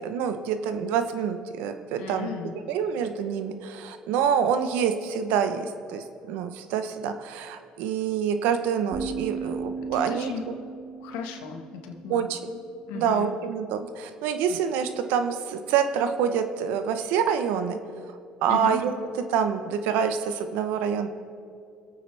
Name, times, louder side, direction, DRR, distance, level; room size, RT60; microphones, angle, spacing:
voice 1, 0.0-2.3 2.7-10.4 12.1-12.6 12.9-17.8 18.4-18.9 19.3-21.1, right 7 dB, 80° right, 8 dB, 0.9 m, -26 dB
voice 2, 2.0-2.5 9.8-10.4 11.0-12.3 12.9-13.3 18.5-18.8, left 6 dB, 85° left, 4 dB, 1.4 m, -35 dB
sound 1, 8.9-12.8, right 5 dB, 50° right, 2.8 m, -37 dB
23.5 x 8.8 x 3.4 m, 2.4 s
supercardioid pair, 85°, 3 cm